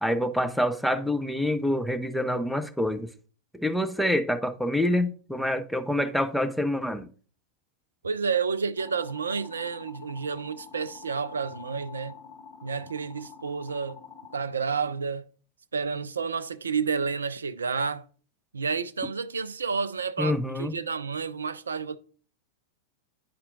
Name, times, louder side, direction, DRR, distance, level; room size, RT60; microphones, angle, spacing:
voice 1, 0.0-3.1 3.5-7.1 20.2-20.8, left 1 dB, ahead, 0.6 m, -26 dB
voice 2, 8.0-12.2 12.6-14.0 14.3-15.2 15.7-18.0 18.5-22.0, right 5 dB, 75° right, 0.3 m, -30 dB
sound 1, 8.8-14.4, left 7 dB, 50° left, 1.1 m, -47 dB
10.0 x 4.3 x 2.6 m
figure-of-eight pair, 90°, 0 cm